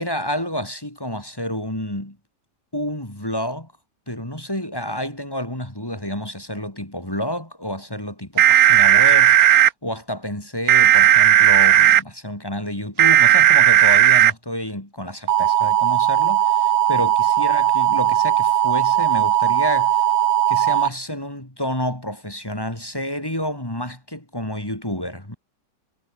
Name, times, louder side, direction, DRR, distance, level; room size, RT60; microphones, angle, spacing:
voice 1, 0.0-2.2 2.7-3.7 4.1-20.0 20.5-25.4, equal, 10° left, 3.7 m, -29 dB
sound 1, 8.4-9.7 10.7-12.0 13.0-14.3 15.3-20.9, right 11 dB, 60° right, 1.2 m, -15 dB
omnidirectional pair, 1.9 m